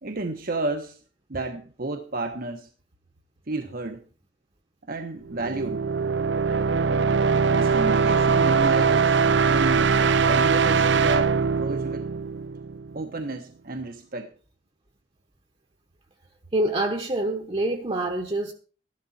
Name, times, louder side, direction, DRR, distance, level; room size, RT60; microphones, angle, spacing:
voice 1, 0.0-1.0 1.3-2.7 3.5-4.0 4.9-5.8 7.5-9.2 9.5-9.9 10.2-12.1 12.9-14.3, right 2 dB, 55° right, 1.2 m, -32 dB
sound 1, 5.3-13.0, right 5 dB, 75° right, 0.6 m, -21 dB
voice 2, 16.5-18.5, right 1 dB, 30° right, 1.2 m, -26 dB
14.0 x 12.0 x 4.3 m
head